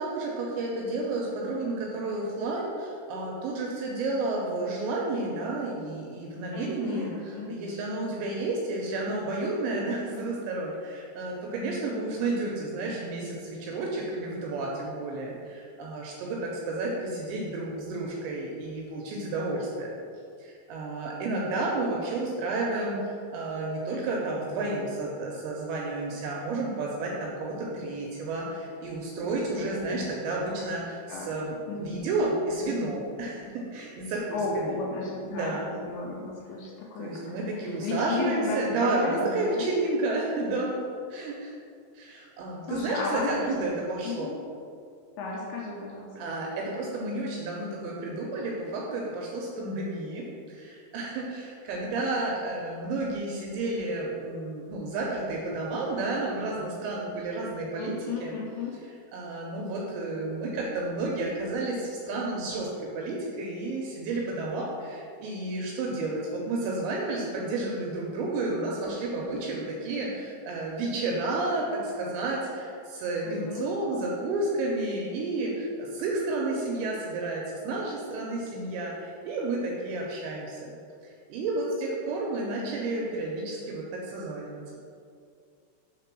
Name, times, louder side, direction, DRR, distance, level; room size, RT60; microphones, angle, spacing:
voice 1, 0.0-19.9 20.4-34.8 35.2-35.7 37.0-40.8 41.1-41.5 41.9-44.3 46.2-58.3 59.1-80.7 81.0-84.6, right 2 dB, 80° right, -2 dB, 2.7 m, -31 dB
voice 2, 6.5-7.6 29.6-30.1 31.1-31.3 31.7-32.0 34.3-37.3 37.5-39.7 42.6-43.5 44.0-44.4 45.2-46.1 57.8-58.7 73.2-73.7, left 3 dB, 80° left, -3 dB, 2.7 m, -34 dB
6.8 x 3.6 x 6.0 m, 2.3 s
omnidirectional pair, 5.7 m